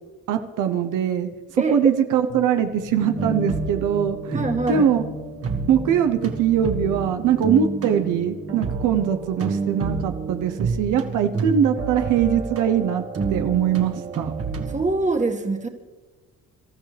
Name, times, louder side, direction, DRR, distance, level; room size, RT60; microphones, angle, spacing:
voice 1, 0.3-4.4 4.7-5.1 5.7-13.0 13.3-14.3, right 8 dB, 85° right, 7 dB, 1.0 m, -22 dB
voice 2, 1.6-1.9 4.3-4.9 14.7-15.7, right 3 dB, 25° right, 3 dB, 1.9 m, -23 dB
sound 1, 2.3-10.1, left 3 dB, 70° left, 5.8 m, -37 dB
sound 2, 3.2-14.8, right 4 dB, 50° right, 1.8 m, -30 dB
26.0 x 13.0 x 3.4 m, 1.3 s
cardioid pair, 90°, 30 cm